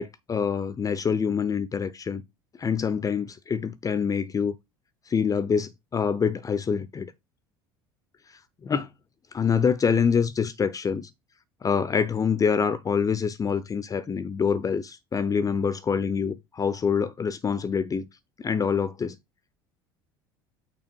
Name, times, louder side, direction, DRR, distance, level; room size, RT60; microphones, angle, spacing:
voice 1, 0.0-2.2 2.6-4.5 5.1-7.1 8.6-8.9 9.3-11.1 11.6-18.0 18.4-19.2, left 6 dB, 30° left, 0.7 m, -26 dB
6.0 x 4.3 x 4.5 m
hypercardioid pair, 70°, 12 cm